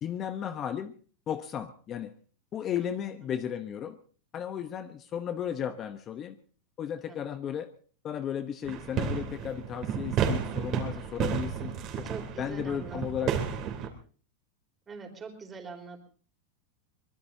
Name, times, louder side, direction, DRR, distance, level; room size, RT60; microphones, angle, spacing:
voice 1, 0.0-0.9 1.3-2.1 2.5-4.0 4.3-6.4 6.8-7.7 8.0-12.1 12.4-13.4, left 9 dB, 30° left, 10 dB, 0.9 m, -34 dB
sound 1, 8.6-13.9, right 7 dB, 40° right, 3.2 m, -32 dB
voice 2, 12.0-13.4 14.9-16.1, right 4 dB, 20° right, 5 dB, 4.1 m, -44 dB
23.5 x 20.5 x 2.7 m, 0.41 s
supercardioid pair, 135°, 0 cm